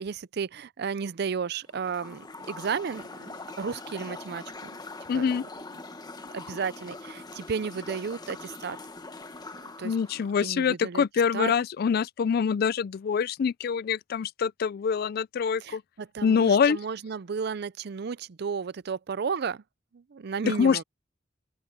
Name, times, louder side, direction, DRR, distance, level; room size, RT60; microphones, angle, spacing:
voice 1, 0.0-4.4 5.1-5.4 6.3-8.8 9.5-9.9 10.4-11.0 11.3-11.5 15.6-19.6 19.9-20.8, right 6 dB, 60° right, 0.5 m, -33 dB
sound 1, 1.7-10.3, left 3 dB, 20° left, 1.3 m, -43 dB
voice 2, 5.1-5.4 9.8-15.8 16.2-16.8 20.4-20.8, left 6 dB, 55° left, 0.3 m, -25 dB
open air
head